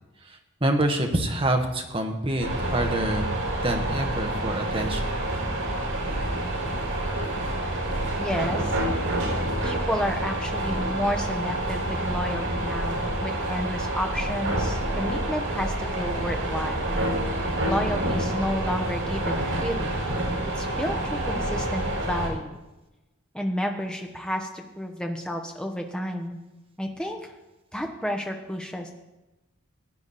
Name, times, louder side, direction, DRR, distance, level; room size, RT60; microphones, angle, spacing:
voice 1, 0.6-5.1, right 1 dB, 25° right, 4 dB, 1.3 m, -26 dB
sound 1, 2.4-22.3, right 1 dB, 80° right, 4.7 m, -28 dB
voice 2, 8.2-8.7 9.6-17.0 17.7-20.0 20.6-22.5 23.3-26.4 26.8-27.3 27.7-28.9, equal, 5° left, 3 dB, 1.1 m, -31 dB
16.0 x 9.3 x 4.2 m, 1.0 s
head